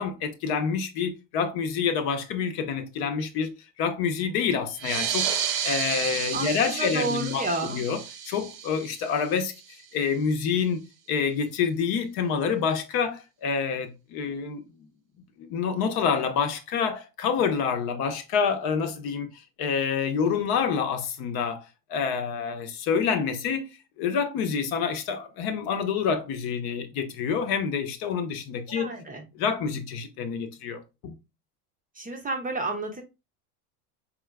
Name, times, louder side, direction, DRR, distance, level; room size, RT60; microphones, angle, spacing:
voice 1, 0.0-5.3 5.6-9.5 9.9-10.8 11.1-14.6 15.4-19.3 19.6-21.6 21.9-23.7 24.0-28.9 29.3-31.1, left 6 dB, 50° left, 0.8 m, -27 dB
sound 1, 4.7-9.8, right 8 dB, 70° right, 0.8 m, -32 dB
voice 2, 6.3-7.8 28.7-29.2 32.0-33.0, right 2 dB, 20° right, 0.6 m, -31 dB
4.3 x 3.5 x 2.3 m
hypercardioid pair, 90°, 46 cm